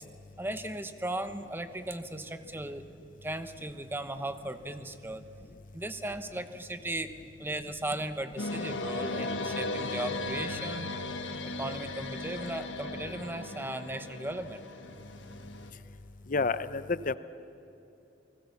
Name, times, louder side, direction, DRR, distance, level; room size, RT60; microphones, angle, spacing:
voice 1, 0.4-2.8 3.2-5.2 5.7-7.1 7.4-10.9 11.6-14.6, right 1 dB, 10° right, 9 dB, 1.0 m, -37 dB
sound 1, 8.4-15.7, left 2 dB, 85° left, 1.7 m, -36 dB
voice 2, 16.3-17.2, left 4 dB, 45° left, 14 dB, 0.7 m, -29 dB
29.5 x 19.5 x 7.1 m, 2.8 s
head